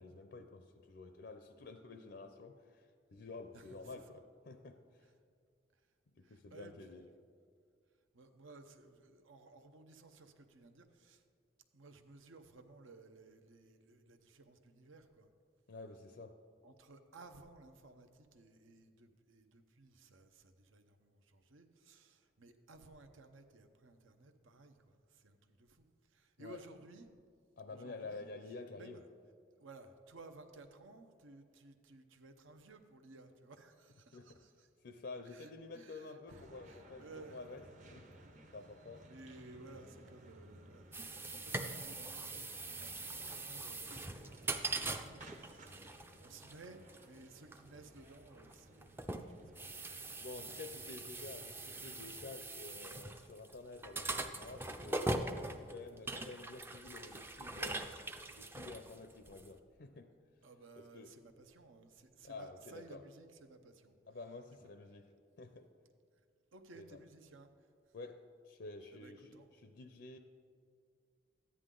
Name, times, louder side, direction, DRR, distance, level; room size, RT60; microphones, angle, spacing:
voice 1, 0.0-5.0 6.1-7.0 15.7-16.4 26.4-26.6 27.6-29.0 34.1-34.4 34.8-37.6 37.9-38.1 38.5-39.1 50.2-55.2 55.6-57.9 58.4-60.1 60.8-61.1 62.2-63.0 64.1-65.1 65.4-65.7 66.7-67.0 67.9-70.2, left 3 dB, 55° left, 8 dB, 0.5 m, -50 dB
voice 2, 3.5-3.9 5.0-5.1 5.7-5.8 6.2-7.1 8.1-11.2 11.7-15.3 16.6-27.1 27.7-28.3 28.7-29.0 29.6-34.7 35.2-37.4 39.0-49.9 50.5-50.6 60.4-63.9 64.6-64.7 66.5-68.0 68.9-69.5, right 3 dB, 80° right, 7 dB, 0.8 m, -58 dB
sound 1, 36.3-52.4, right 1 dB, 35° right, 0.8 m, -59 dB
sound 2, 40.9-59.5, right 2 dB, 10° right, 0.4 m, -42 dB
13.5 x 9.8 x 3.8 m, 2.2 s
head